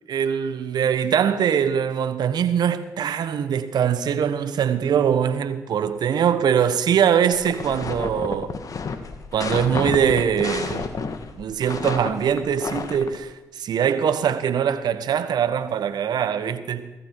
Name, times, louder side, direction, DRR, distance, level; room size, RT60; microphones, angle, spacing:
voice 1, 0.1-8.5 9.3-10.9 11.4-16.9, right 8 dB, 65° right, 1.2 m, -22 dB
sound 1, 7.3-13.2, left 5 dB, 50° left, 1.7 m, -30 dB
18.0 x 15.0 x 4.8 m
supercardioid pair, 50°, 8 cm